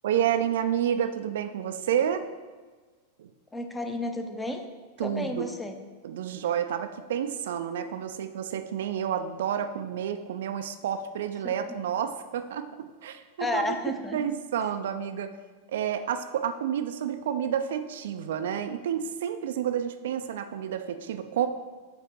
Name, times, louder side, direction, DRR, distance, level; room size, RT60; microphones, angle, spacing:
voice 1, 0.0-2.3 3.2-3.3 5.0-5.5 6.0-13.7 14.1-15.3 15.7-21.5, right 9 dB, 60° right, 8 dB, 0.3 m, -30 dB
voice 2, 3.5-4.6 5.0-5.8 11.4-11.7 13.4-14.2, left 1 dB, 10° left, 5 dB, 0.6 m, -32 dB
8.1 x 2.8 x 4.6 m, 1.4 s
figure-of-eight pair, 90°, 0 cm